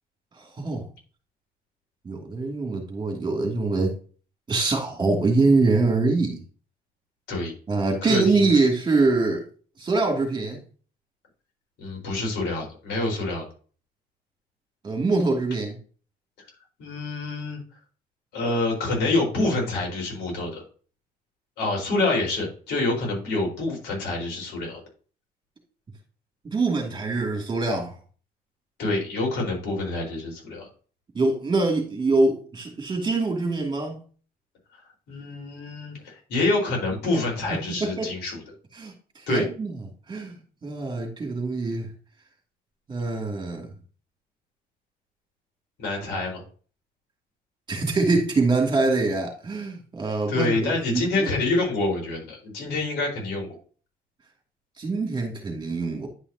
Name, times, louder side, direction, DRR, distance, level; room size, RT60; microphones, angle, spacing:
voice 1, 0.4-0.9 2.0-3.9 4.5-6.4 7.7-9.4 9.8-10.6 14.8-15.8 26.5-28.0 31.1-34.0 37.8-38.1 38.8-39.7 40.1-41.9 42.9-43.7 47.7-51.3 54.8-56.1, right 3 dB, 25° right, 2 dB, 2.7 m, -24 dB
voice 2, 8.0-8.5 11.8-13.5 16.8-17.6 18.3-20.6 21.6-24.8 28.8-30.7 35.1-38.4 39.3-39.4 45.8-46.4 50.3-53.5, left 2 dB, 85° left, 0 dB, 4.6 m, -27 dB
10.5 x 5.6 x 2.9 m, 0.39 s
cardioid pair, 110°, 17 cm